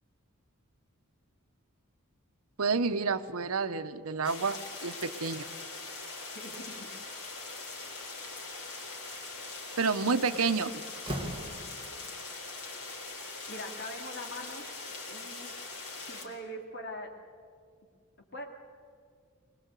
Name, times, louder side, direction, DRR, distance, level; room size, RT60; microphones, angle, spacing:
voice 1, 2.6-5.5 9.8-10.7, right 4 dB, 80° right, 11 dB, 1.0 m, -29 dB
sound 1, 4.2-16.3, left 3 dB, 85° left, 4.0 m, -42 dB
voice 2, 6.3-6.9 13.5-14.6 15.1-15.5 16.1-17.1 18.3-18.4, equal, 50° left, 2 dB, 3.1 m, -42 dB
Slam, 9.7-9.9 10.3-12.2, equal, 25° right, 1.6 m, -40 dB
23.0 x 21.0 x 8.3 m, 2.1 s
head